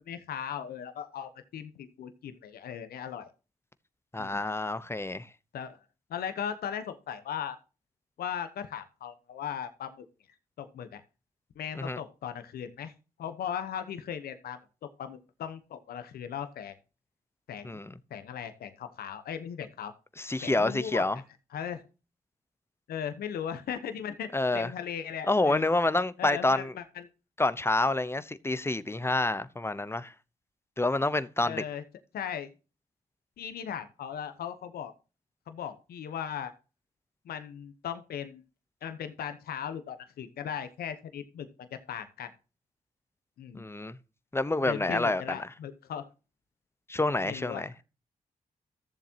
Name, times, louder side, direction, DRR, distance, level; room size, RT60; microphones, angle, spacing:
voice 1, 0.1-3.3 4.2-4.4 5.5-5.8 6.1-7.6 8.2-10.0 10.6-11.0 11.5-12.9 13.2-16.7 17.5-17.8 18.1-19.9 20.4-21.1 21.5-21.8 22.9-25.7 26.2-27.1 31.4-31.8 32.1-32.5 33.4-34.9 35.5-36.5 37.2-38.4 38.8-42.3 43.4-43.6 44.6-46.1 47.2-47.8, left 8 dB, 85° left, 1.0 m, -38 dB
voice 2, 4.1-5.3 11.8-12.0 17.6-17.9 20.2-21.2 24.3-24.7 25.3-26.7 27.4-30.1 30.8-31.6 43.5-44.0 44.3-45.5 46.9-47.7, left 2 dB, 15° left, 0.9 m, -28 dB
14.0 x 7.3 x 2.9 m
cardioid pair, 55°, 16 cm